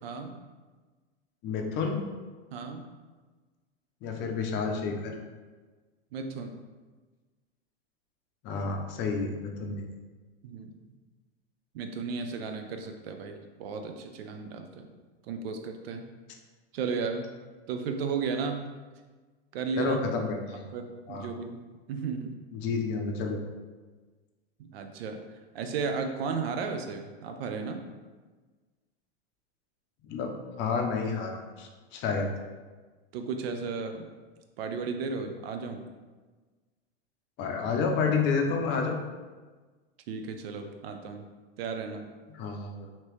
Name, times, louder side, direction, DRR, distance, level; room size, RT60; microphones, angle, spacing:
voice 1, 0.0-0.4 2.5-2.8 6.1-6.6 10.4-10.8 11.7-14.9 15.2-16.1 16.7-17.2 17.7-18.7 19.5-20.0 20.7-21.6 21.9-22.3 24.6-25.2 25.5-27.8 33.1-34.1 34.6-35.8 40.1-41.3 41.6-42.1, right 5 dB, 65° right, 5 dB, 0.6 m, -34 dB
voice 2, 1.4-2.0 4.0-5.1 8.4-9.8 19.8-20.7 21.1-21.3 22.5-23.4 30.1-32.3 37.4-39.0 42.3-42.9, left 5 dB, 35° left, 3 dB, 0.5 m, -30 dB
2.9 x 2.9 x 3.1 m, 1.3 s
hypercardioid pair, 110°, 32 cm